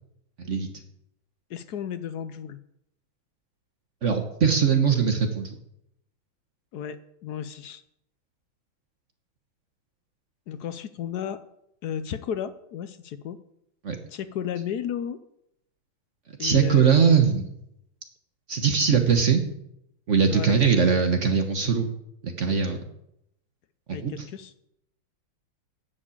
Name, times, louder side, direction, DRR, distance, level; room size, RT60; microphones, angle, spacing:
voice 1, 0.4-0.7 4.0-5.6 13.8-14.0 16.4-17.5 18.5-19.4 20.1-21.9 22.2-22.8 23.9-24.1, right 6 dB, 45° right, 6 dB, 1.1 m, -21 dB
voice 2, 1.5-2.6 6.7-7.8 10.5-11.4 11.8-13.4 14.1-15.2 16.4-17.0 20.3-20.5 23.9-24.5, left 8 dB, 70° left, 12 dB, 0.9 m, -33 dB
10.0 x 7.3 x 8.4 m, 0.78 s
omnidirectional pair, 2.3 m